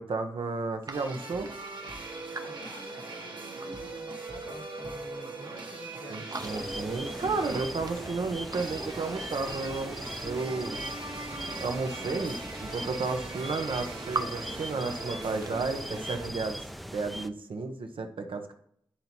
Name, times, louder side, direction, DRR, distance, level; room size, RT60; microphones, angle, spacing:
voice 1, 0.0-1.5 6.1-10.8 11.6-16.6 16.9-18.5, right 3 dB, 85° right, 5 dB, 0.8 m, -33 dB
sound 1, 0.8-3.8 4.2-5.7 6.0-6.9 7.2-9.8 10.4-11.6 12.4-12.5 12.7-14.2 14.5-15.5, right 3 dB, 45° right, 0.6 m, -43 dB
sound 2, 0.9-16.3, right 3 dB, 60° right, 1.2 m, -40 dB
voice 2, 2.3-6.5, left 1 dB, 65° left, 4 dB, 1.5 m, -49 dB
sound 3, 6.4-17.3, equal, ahead, 0.4 m, -40 dB
11.5 x 4.0 x 2.9 m, 0.70 s
wide cardioid pair, 65°, 9 cm